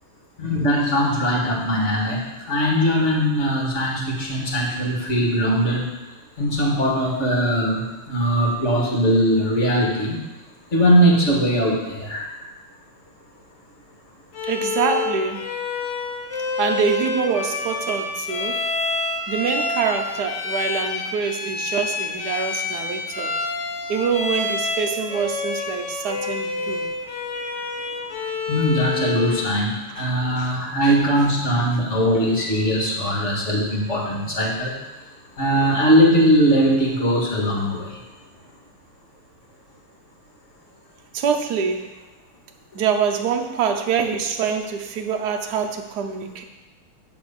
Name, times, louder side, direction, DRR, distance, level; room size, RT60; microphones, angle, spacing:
voice 1, 0.4-5.9 6.4-10.2 10.7-12.2 28.5-34.7 35.4-37.9, equal, 35° left, -2 dB, 2.1 m, -20 dB
Bowed string instrument, 14.3-29.6, left 3 dB, 70° left, 0.6 m, -28 dB
voice 2, 14.4-15.5 16.6-18.6 19.3-23.3 23.9-26.9 29.3-29.4 29.9-30.1 30.4-30.5 41.1-41.9 42.7-46.4, right 6 dB, 60° right, 4 dB, 1.2 m, -25 dB
9.8 x 4.0 x 6.9 m, 1.1 s
omnidirectional pair, 2.4 m